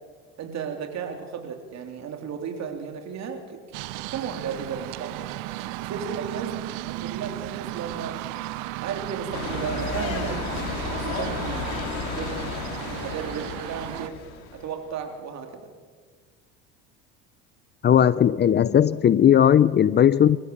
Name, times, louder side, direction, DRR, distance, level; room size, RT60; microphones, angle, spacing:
voice 1, 0.4-3.6 4.0-5.3 5.8-6.5 6.9-8.2 8.8-11.7 12.1-12.7 13.0-14.2 14.5-15.7, right 6 dB, 55° right, 4 dB, 3.7 m, -34 dB
sound 1, 3.7-14.1, right 17 dB, 75° right, 0.9 m, -35 dB
sound 2, 9.3-14.7, left 6 dB, 80° left, 3.2 m, -33 dB
voice 2, 17.8-20.4, left 9 dB, 30° left, 18 dB, 0.6 m, -17 dB
25.5 x 15.0 x 7.2 m, 1.5 s
supercardioid pair, 95°, 33 cm